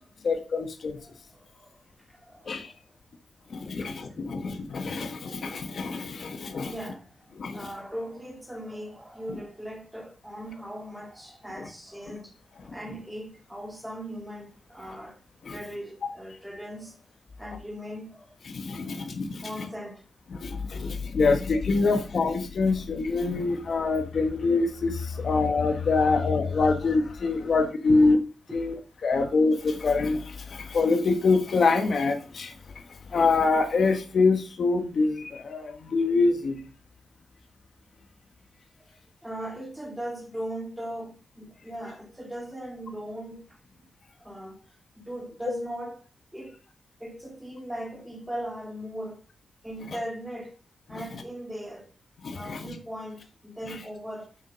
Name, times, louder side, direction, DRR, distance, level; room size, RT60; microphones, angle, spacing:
voice 1, 0.2-1.0 2.5-2.7 3.5-6.7 7.4-7.7 9.3-9.4 11.6-11.7 12.6-12.7 15.4-15.6 18.4-19.7 20.3-28.2 28.5-36.7 49.9-50.0 50.9-51.0 52.2-52.7 53.7-53.8, left 3 dB, 55° left, 1.3 m, -25 dB
voice 2, 1.0-1.8 2.1-2.7 3.8-3.9 6.7-15.2 15.5-17.0 17.4-18.3 18.9-19.1 19.4-20.0 20.7-20.9 21.9-22.1 23.4-23.5 25.2-25.3 26.1-26.2 27.9-28.1 28.5-28.8 39.2-43.9 44.2-46.0 46.3-46.6 47.0-49.2 49.6-50.6 50.9-51.9 52.3-54.3, equal, 10° right, 2.7 m, -39 dB
7.3 x 6.6 x 5.1 m
wide cardioid pair, 115°, 0 cm